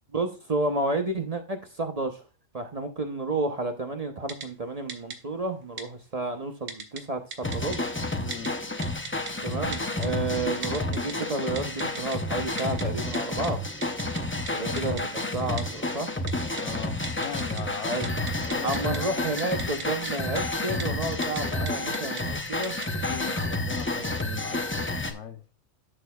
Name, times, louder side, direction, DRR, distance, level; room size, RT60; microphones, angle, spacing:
voice 1, 0.1-2.2 2.5-7.9 9.4-13.6 14.5-15.0 15.3-16.1 17.9-18.1 18.6-22.8 23.9-24.1, right 2 dB, 35° right, 0.8 m, -31 dB
Typing, 4.3-4.5 4.9-5.2 5.8-5.9 6.7-7.0 7.3-7.8 8.3-8.5 8.8-9.3 9.7-10.1 10.6-11.1 11.6-12.2 12.6-12.8 13.1-13.2 13.4-13.5 13.8-14.2 14.5-14.6 14.8-15.0 15.6-15.7 16.3-16.6 17.0-17.6 17.9-19.0 19.4-20.1 20.4-20.5 20.8-20.9 21.2-21.4 21.7-22.2 22.6-22.9, right 5 dB, 75° right, 1.4 m, -37 dB
sound 1, 7.4-25.1, left 2 dB, 15° left, 0.4 m, -30 dB
voice 2, 8.2-8.6 14.6-14.8 16.6-19.2 23.0-25.4, left 7 dB, 70° left, 1.1 m, -39 dB
11.0 x 6.5 x 2.3 m
omnidirectional pair, 1.3 m